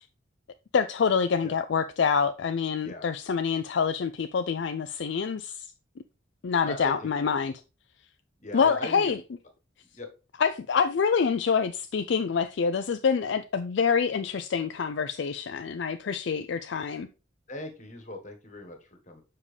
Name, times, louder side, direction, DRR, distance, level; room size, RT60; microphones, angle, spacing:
voice 1, 0.7-5.7 6.4-7.5 8.5-9.2 10.4-17.1, left 6 dB, 60° left, 0.4 m, -26 dB
voice 2, 6.6-7.4 8.4-9.1 9.9-10.1 17.5-19.2, left 1 dB, 35° left, 1.4 m, -40 dB
7.3 x 5.5 x 3.3 m
head